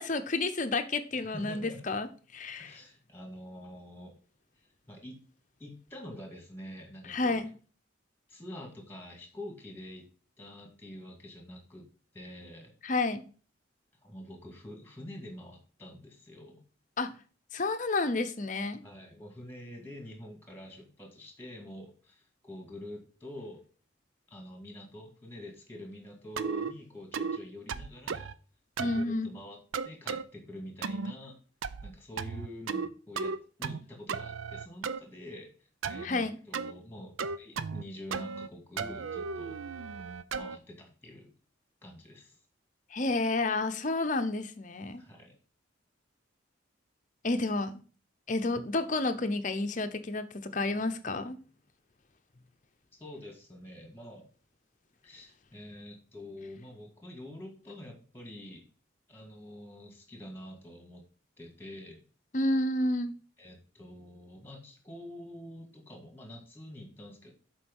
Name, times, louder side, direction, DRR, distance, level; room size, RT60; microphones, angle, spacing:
voice 1, 0.0-2.1 2.3-2.8 7.1-7.5 12.8-13.2 17.0-17.1 17.5-18.8 28.8-29.3 36.0-36.4 42.9-45.0 47.2-47.8 48.3-51.4 62.3-63.1, left 2 dB, 40° left, 0.7 m, -30 dB
voice 2, 1.2-1.9 2.6-4.1 4.9-5.2 5.6-7.5 8.3-10.0 10.4-11.9 12.1-12.7 14.0-16.6 18.8-23.6 24.3-28.3 28.8-31.3 31.8-33.3 33.6-35.5 35.9-39.6 40.3-41.3 41.8-42.4 45.0-45.4 53.0-54.3 55.0-58.6 59.1-61.1 61.4-62.0 63.4-67.3, left 1 dB, 10° left, 2.1 m, -46 dB
sound 1, 26.4-26.7 27.1-27.4 27.7-28.3 28.8-29.0 29.7-30.2 30.8-31.1 31.6-31.9 32.2-32.9 33.2-33.8 34.1-35.0 35.8-36.1 36.5-36.7 37.2-37.8 38.1-38.5 38.8-40.6, right 5 dB, 85° right, 0.5 m, -35 dB
7.4 x 4.7 x 5.4 m
head